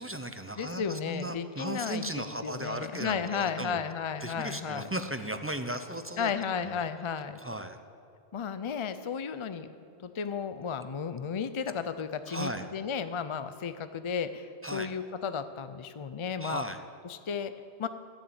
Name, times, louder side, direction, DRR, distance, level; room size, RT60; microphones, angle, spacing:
voice 1, 0.0-3.8 4.2-6.3 6.6-6.9 7.4-7.8 12.3-12.6 14.6-14.9 16.4-16.8, right 1 dB, 20° right, 8 dB, 0.4 m, -36 dB
voice 2, 0.6-4.9 6.2-7.4 8.3-9.7 10.0-16.6 17.0-17.5 17.8-17.9, left 6 dB, 45° left, 11 dB, 0.4 m, -34 dB
14.0 x 7.1 x 8.7 m, 2.7 s
omnidirectional pair, 1.1 m